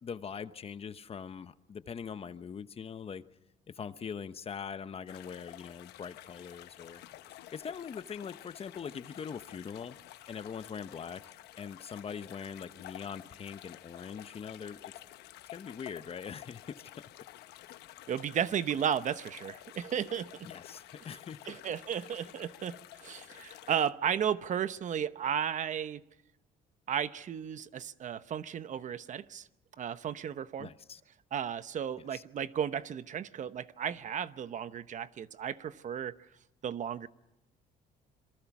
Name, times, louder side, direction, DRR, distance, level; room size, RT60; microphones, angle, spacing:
voice 1, 0.0-3.2 3.7-7.0 7.3-10.0 10.3-11.2 11.6-14.8 15.5-16.8 20.4-21.6 22.0-22.1 30.6-31.0 32.1-32.2, left 6 dB, 35° left, 12 dB, 1.0 m, -42 dB
sound 1, 5.1-23.9, left 14 dB, 80° left, 1.0 m, -51 dB
voice 2, 18.1-20.5 21.5-26.0 26.9-29.5 29.8-30.7 31.3-36.1 36.6-37.1, right 8 dB, 45° right, 13 dB, 0.9 m, -34 dB
27.0 x 23.0 x 6.1 m, 0.90 s
cardioid pair, 110°, 17 cm